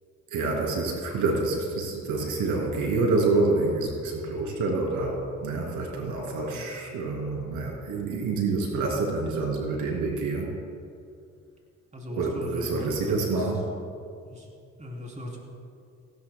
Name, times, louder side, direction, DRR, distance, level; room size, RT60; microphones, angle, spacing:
voice 1, 0.3-10.5 12.1-13.6, right 3 dB, 90° right, -1 dB, 2.7 m, -27 dB
voice 2, 6.3-6.7 11.9-13.5 14.2-14.5 14.8-15.4, equal, 25° right, -1 dB, 3.4 m, -39 dB
17.5 x 17.0 x 2.3 m, 2.4 s
cardioid pair, 90°, 30 cm